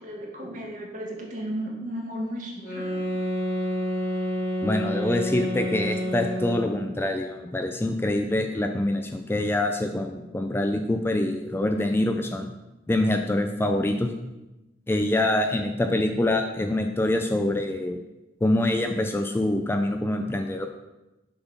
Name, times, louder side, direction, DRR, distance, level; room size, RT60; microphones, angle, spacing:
voice 1, 0.0-3.0, equal, 45° right, -1 dB, 1.5 m, -34 dB
sound 1, 2.6-6.8, equal, 55° left, 2.1 m, -29 dB
voice 2, 4.6-12.5 12.9-14.1 14.9-18.0 18.4-20.7, left 1 dB, 15° left, 5 dB, 0.3 m, -25 dB
6.8 x 4.1 x 5.4 m, 1.0 s
head